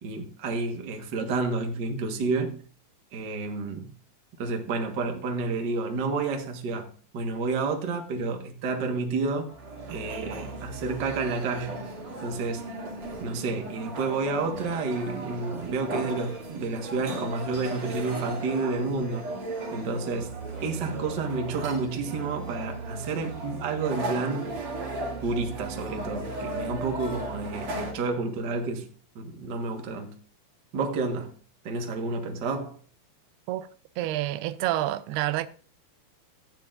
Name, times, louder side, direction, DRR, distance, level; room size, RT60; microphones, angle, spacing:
voice 1, 0.0-2.6 3.1-3.9 4.4-6.9 7.1-9.5 9.9-11.9 12.2-12.6 13.2-19.3 19.7-20.3 20.6-24.5 25.2-28.9 29.1-30.2 30.7-31.3 31.6-32.8, right 3 dB, 75° right, 1.0 m, -30 dB
sound 1, 9.5-27.9, right 2 dB, 50° right, 3.1 m, -36 dB
voice 2, 34.0-35.5, right 14 dB, 90° right, 2.6 m, -28 dB
14.5 x 9.8 x 2.5 m
omnidirectional pair, 4.5 m